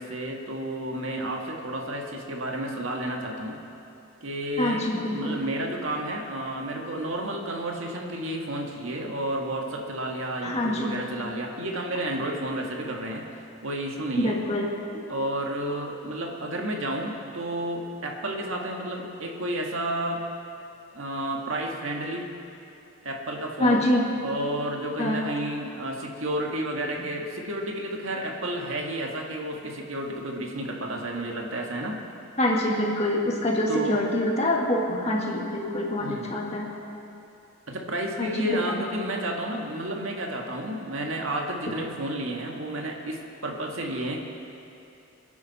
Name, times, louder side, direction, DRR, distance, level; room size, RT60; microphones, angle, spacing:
voice 1, 0.0-3.6 4.2-4.9 5.1-14.4 15.1-20.3 20.9-22.3 23.0-23.8 24.2-32.0 33.7-34.0 36.0-36.4 37.7-44.2, right 1 dB, 70° right, 0 dB, 1.8 m, -31 dB
voice 2, 4.6-5.4 10.4-11.0 11.6-11.7 14.2-15.0 23.6-24.0 25.0-25.2 27.0-27.1 32.4-36.7 38.2-38.8, left 1 dB, 30° left, -1 dB, 1.9 m, -25 dB
27.0 x 10.5 x 4.2 m, 2.7 s
head